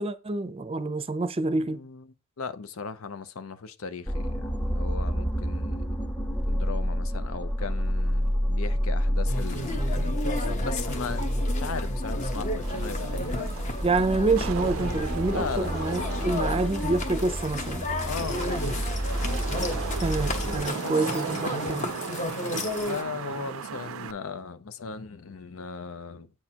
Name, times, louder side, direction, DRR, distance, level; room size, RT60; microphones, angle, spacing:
voice 1, 0.0-1.8 13.8-17.9 20.0-21.9, right 3 dB, 30° right, 0.6 m, -27 dB
voice 2, 1.5-5.9 6.5-13.4 15.3-16.8 18.0-18.9 20.8-21.2 22.9-26.3, left 5 dB, 85° left, 0.6 m, -37 dB
sound 1, 4.1-20.7, equal, 5° left, 0.8 m, -29 dB
sound 2, 9.3-23.0, left 2 dB, 35° left, 1.1 m, -34 dB
Wind / Rain, 12.6-24.1, right 7 dB, 80° right, 0.4 m, -37 dB
8.5 x 6.2 x 2.9 m
head